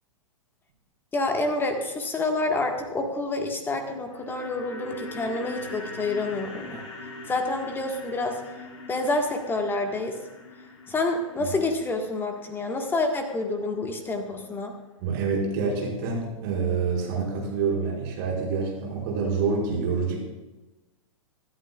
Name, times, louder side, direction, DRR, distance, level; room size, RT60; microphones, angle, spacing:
voice 1, 1.1-6.8 7.3-8.4 8.9-10.1 10.9-14.7, left 2 dB, 10° left, 4 dB, 1.7 m, -28 dB
sound 1, 4.0-14.1 14.4-14.5, left 2 dB, 50° left, 3.7 m, -42 dB
voice 2, 15.0-20.2, right 5 dB, 45° right, -3 dB, 5.5 m, -27 dB
25.0 x 11.5 x 2.4 m, 1.1 s
figure-of-eight pair, 110°, 17 cm